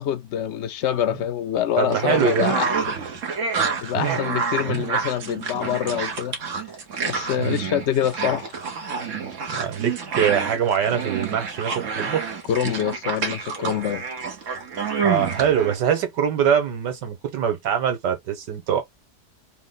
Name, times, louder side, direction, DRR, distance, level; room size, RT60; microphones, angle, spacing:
voice 1, 0.0-2.7 3.8-6.4 7.1-8.6 12.5-14.0, left 10 dB, 75° left, 0.6 m, -25 dB
voice 2, 1.8-2.5 3.9-4.2 4.7-4.9 7.4-7.7 9.5-12.3 15.0-18.8, right 8 dB, 85° right, 1.8 m, -23 dB
sound 1, 1.9-15.7, right 5 dB, 50° right, 1.3 m, -28 dB
4.1 x 2.1 x 4.0 m
omnidirectional pair, 1.8 m